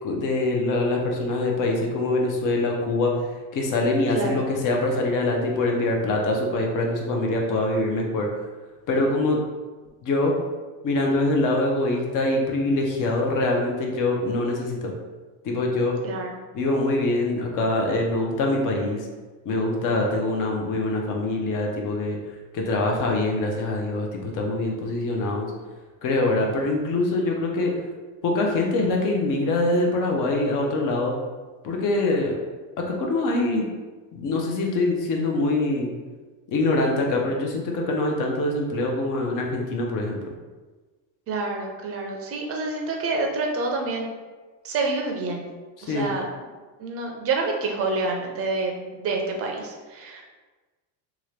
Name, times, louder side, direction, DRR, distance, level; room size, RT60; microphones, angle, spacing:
voice 1, 0.0-3.1 3.5-8.3 8.9-9.4 10.0-10.3 10.8-14.9 15.4-15.9 16.5-19.1 19.5-22.2 22.5-25.5 26.0-27.7 28.2-31.1 31.6-32.4 32.9-33.7 34.1-35.9 36.5-40.2 45.8-46.1, left 2 dB, 45° left, 1 dB, 0.7 m, -24 dB
voice 2, 16.0-16.4 20.0-20.1 41.3-44.1 44.6-45.5 45.8-46.2 46.8-50.2, right 3 dB, 30° right, 1 dB, 0.5 m, -28 dB
2.8 x 2.4 x 3.2 m, 1.3 s
supercardioid pair, 120°, 47 cm